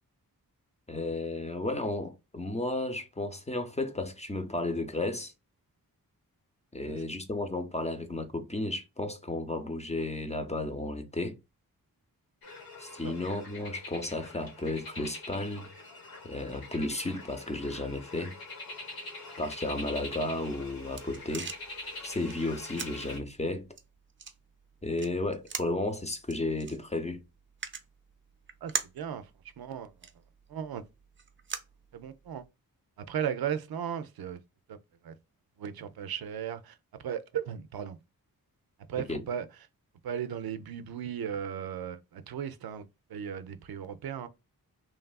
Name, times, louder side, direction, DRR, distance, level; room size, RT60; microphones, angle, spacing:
voice 1, 0.9-5.3 6.7-11.4 12.8-15.7 16.2-18.3 19.4-21.5 22.0-23.6 24.8-27.2 39.1-39.2, left 2 dB, 20° left, 0.6 m, -33 dB
sound 1, 12.4-23.2, left 2 dB, 75° left, 1.2 m, -44 dB
sound 2, 20.4-32.5, right 5 dB, 35° right, 0.5 m, -43 dB
voice 2, 28.6-29.3 29.6-29.9 30.5-30.8 31.9-32.4 33.1-34.4 34.7-34.8 35.0-35.1 35.6-36.8 37.0-38.0 38.9-39.5 40.0-44.3, right 8 dB, 80° right, 0.5 m, -36 dB
3.2 x 2.3 x 2.3 m
wide cardioid pair, 75°, 36 cm